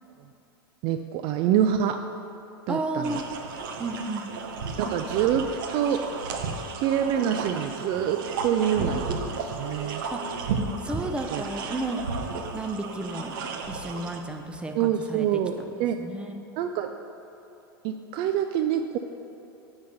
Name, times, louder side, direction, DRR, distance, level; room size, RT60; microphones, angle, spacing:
voice 1, 0.8-2.1 2.7-3.2 4.8-6.1 6.7-10.0 11.3-11.4 14.7-15.5 15.8-16.0 16.6-16.9 17.8-19.0, right 9 dB, 45° right, 7 dB, 0.4 m, -26 dB
voice 2, 2.7-3.2 3.8-4.3 10.1-10.2 10.8-12.0 12.5-13.4 13.7-15.4 16.0-16.4, right 2 dB, 10° right, 4 dB, 0.7 m, -32 dB
sound 1, 3.0-14.2, right 4 dB, 60° right, 0.8 m, -33 dB
sound 2, 5.2-11.6 12.6-12.7, right 5 dB, 75° right, 1.3 m, -43 dB
9.5 x 4.0 x 6.5 m, 2.9 s
hypercardioid pair, 90°, 13 cm